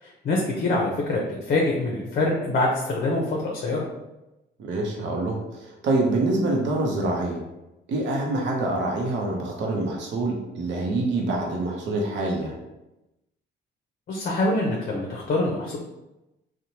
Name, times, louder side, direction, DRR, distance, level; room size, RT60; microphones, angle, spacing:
voice 1, 0.0-3.8 14.1-15.8, left 2 dB, 50° left, -1 dB, 0.5 m, -25 dB
voice 2, 4.6-7.4 7.9-12.6, right 2 dB, 65° right, 0 dB, 0.6 m, -26 dB
2.9 x 2.1 x 2.7 m, 0.96 s
cardioid pair, 90°, 20 cm